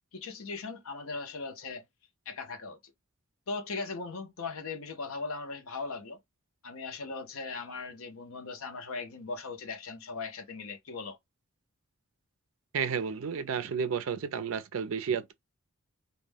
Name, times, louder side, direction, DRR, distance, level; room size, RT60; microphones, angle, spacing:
voice 1, 0.1-1.8 2.3-2.9 3.5-6.2 6.6-11.2, left 4 dB, 70° left, 0.6 m, -39 dB
voice 2, 12.7-15.3, right 6 dB, 65° right, 0.4 m, -31 dB
2.2 x 2.1 x 3.2 m
head